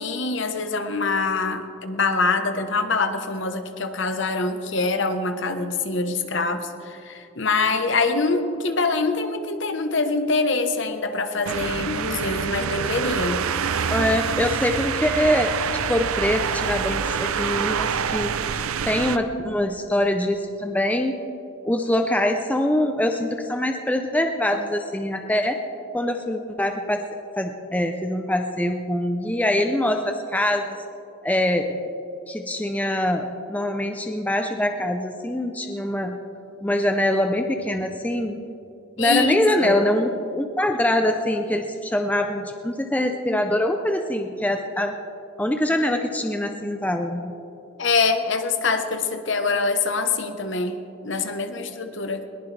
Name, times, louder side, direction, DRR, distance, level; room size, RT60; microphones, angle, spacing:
voice 1, 0.0-13.4 39.0-39.8 47.8-50.8 51.0-52.3, left 3 dB, 60° left, 8 dB, 1.1 m, -24 dB
sound 1, 11.5-19.2, right 7 dB, 85° right, 0.6 m, -26 dB
voice 2, 13.9-15.6 15.9-18.3 18.9-21.2 21.6-25.6 25.9-27.0 27.4-30.8 31.2-31.7 32.3-36.2 36.6-38.4 39.0-45.0 45.4-47.3, left 1 dB, 5° left, 5 dB, 0.6 m, -24 dB
21.0 x 19.0 x 3.4 m, 2.8 s
head